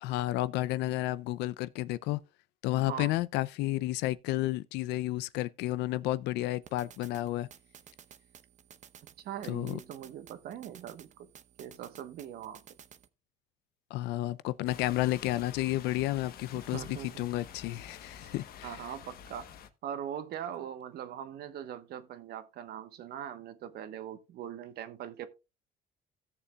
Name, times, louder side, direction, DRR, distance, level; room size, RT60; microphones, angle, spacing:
voice 1, 0.0-2.2 2.6-7.5 9.5-9.8 13.9-18.8, left 16 dB, 90° left, 0.5 m, -31 dB
voice 2, 2.9-3.2 9.2-11.3 11.6-12.6 16.5-17.3 18.2-18.3 18.6-19.5 19.8-25.3, right 10 dB, 70° right, 1.1 m, -41 dB
sound 1, 6.6-13.1, right 9 dB, 45° right, 0.8 m, -55 dB
sound 2, 14.7-19.7, left 8 dB, 65° left, 1.1 m, -48 dB
17.0 x 6.8 x 2.3 m
cardioid pair, 110°, 17 cm